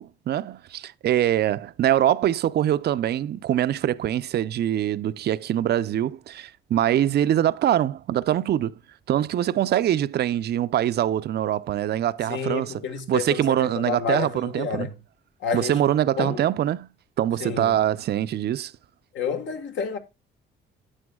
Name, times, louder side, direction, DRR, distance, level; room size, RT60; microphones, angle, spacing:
voice 1, 0.0-8.8 9.1-12.7 13.1-14.9 15.5-16.9 17.2-18.7, right 11 dB, 55° right, 0.5 m, -23 dB
voice 2, 12.3-14.9 15.4-15.9 16.2-16.4 17.4-17.8 19.1-20.0, left 6 dB, 70° left, 1.5 m, -30 dB
9.8 x 7.9 x 2.3 m
cardioid pair, 90°, 20 cm